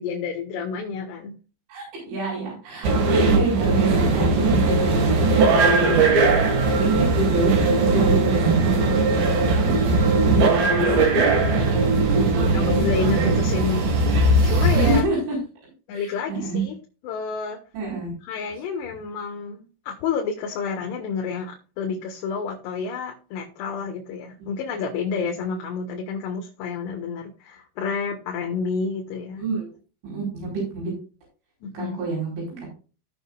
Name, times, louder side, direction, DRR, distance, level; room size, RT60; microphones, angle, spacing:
voice 1, 0.0-1.4 12.5-13.8 14.4-15.0 15.9-16.8 17.0-17.6 18.2-29.4 31.6-32.0, left 5 dB, 75° left, 1 dB, 3.5 m, -29 dB
voice 2, 1.7-6.1 6.4-11.1 11.5-12.7 14.6-15.4 15.9-16.6 17.7-18.1 29.4-29.6 30.0-30.9 31.7-32.7, right 3 dB, 85° right, -4 dB, 7.1 m, -27 dB
sound 1, 2.8-15.0, right 3 dB, 60° right, 3.5 m, -19 dB
17.0 x 6.5 x 2.5 m, 0.35 s
omnidirectional pair, 5.2 m